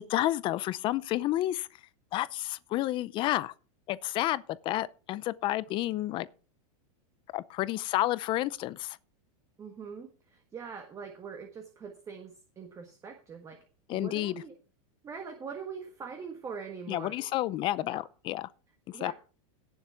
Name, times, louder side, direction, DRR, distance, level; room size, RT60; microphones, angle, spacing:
voice 1, 0.1-1.7 2.1-3.5 3.9-6.3 7.3-9.0 13.9-14.4 16.9-18.5 18.9-19.1, left 15 dB, 30° left, 0.6 m, -30 dB
voice 2, 9.6-10.1 10.5-13.6 13.9-14.5 15.0-17.3 17.9-18.1 18.9-19.1, right 6 dB, 15° right, 1.5 m, -42 dB
17.5 x 7.2 x 3.6 m
supercardioid pair, 155°, 18 cm